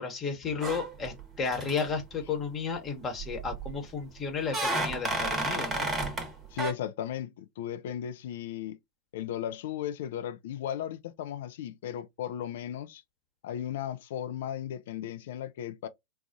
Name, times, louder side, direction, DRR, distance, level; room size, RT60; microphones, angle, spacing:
voice 1, 0.0-5.9, left 5 dB, 25° left, 1.1 m, -33 dB
sound 1, 0.6-1.2 1.4-1.8 3.2-3.7 4.5-6.3 6.6-6.7, right 2 dB, 20° right, 1.0 m, -31 dB
voice 2, 6.5-8.8 9.1-13.0 13.4-15.9, left 10 dB, 55° left, 0.5 m, -36 dB
3.9 x 2.3 x 2.7 m
figure-of-eight pair, 90°, 0 cm